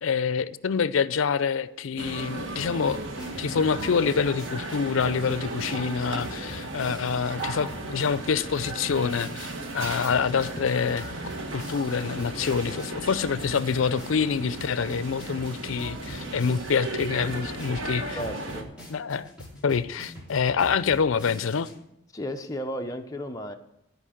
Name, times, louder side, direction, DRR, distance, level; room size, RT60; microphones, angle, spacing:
voice 1, 0.0-3.0 3.4-11.0 11.5-18.2 18.9-19.3 19.6-21.7, left 6 dB, 75° left, 0.5 m, -26 dB
sound 1, 2.0-18.6, right 2 dB, 70° right, 1.4 m, -35 dB
sound 2, 2.6-21.8, equal, 5° right, 2.6 m, -44 dB
voice 2, 18.2-18.7 22.1-23.5, equal, 15° left, 0.7 m, -34 dB
13.5 x 5.0 x 7.8 m
head